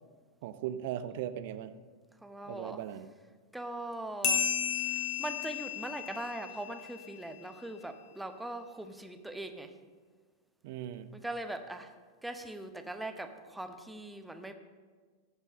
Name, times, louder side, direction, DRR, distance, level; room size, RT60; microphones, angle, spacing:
voice 1, 0.4-1.7 2.4-3.1 10.6-11.1, right 11 dB, 50° right, 12 dB, 0.6 m, -38 dB
voice 2, 2.2-2.8 3.5-4.4 4.9-9.7 11.1-11.9 12.2-14.5, right 1 dB, 5° right, 6 dB, 0.9 m, -41 dB
sound 1, 4.2-7.3, left 8 dB, 40° left, 1.5 m, -33 dB
16.5 x 5.8 x 5.4 m, 1.5 s
figure-of-eight pair, 90°, 0 cm